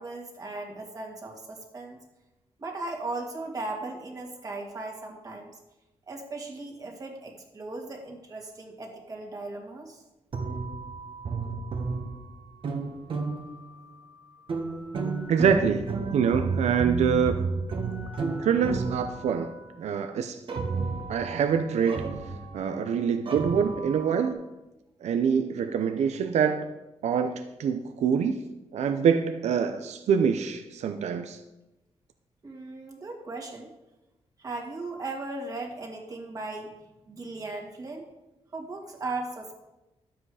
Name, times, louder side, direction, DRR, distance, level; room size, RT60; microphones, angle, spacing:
voice 1, 0.0-2.0 2.6-5.5 6.1-10.0 32.4-33.7 34.4-36.7 37.1-38.0 38.5-39.6, right 2 dB, 30° right, 0 dB, 2.1 m, -37 dB
sound 1, 10.3-13.8 14.5-19.6 20.5-22.9 23.3-24.3, right 4 dB, 50° right, 1.5 m, -32 dB
voice 2, 15.3-15.8 16.1-17.4 18.4-20.4 21.1-22.0 22.5-24.4 25.0-26.7 27.0-28.4 28.7-31.4, right 7 dB, 90° right, 7 dB, 0.7 m, -25 dB
12.0 x 7.9 x 4.9 m, 0.99 s
wide cardioid pair, 150°, 11 cm